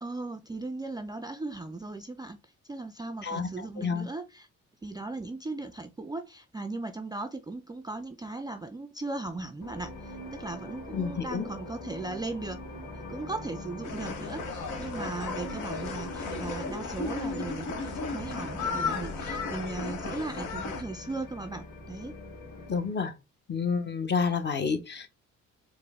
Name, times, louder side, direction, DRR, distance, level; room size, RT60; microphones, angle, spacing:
voice 1, 0.0-2.4 2.7-4.5 4.8-12.6 13.1-22.1, right 2 dB, 15° right, 0.3 m, -37 dB
voice 2, 3.2-4.1 10.9-11.5 22.7-23.1 23.5-25.1, left 5 dB, 35° left, 0.8 m, -29 dB
sound 1, 9.6-22.9, left 1 dB, 60° left, 1.9 m, -43 dB
sound 2, 13.8-20.8, left 4 dB, 85° left, 1.0 m, -35 dB
4.4 x 2.1 x 3.5 m
cardioid pair, 90°, 30 cm